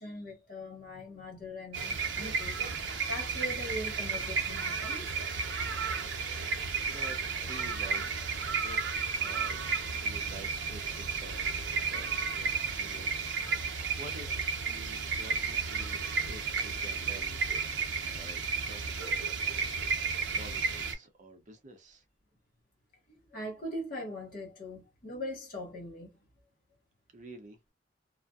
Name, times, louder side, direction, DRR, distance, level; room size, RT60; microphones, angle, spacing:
voice 1, 0.0-2.6 3.1-5.2 23.1-26.2, left 1 dB, 50° left, 1.3 m, -41 dB
sound 1, 1.7-20.9, right 5 dB, 80° right, 0.7 m, -33 dB
voice 2, 6.8-9.6 9.9-13.1 13.4-19.5 20.4-22.0 27.1-27.7, right 2 dB, 40° right, 0.6 m, -50 dB
2.6 x 2.1 x 2.3 m
head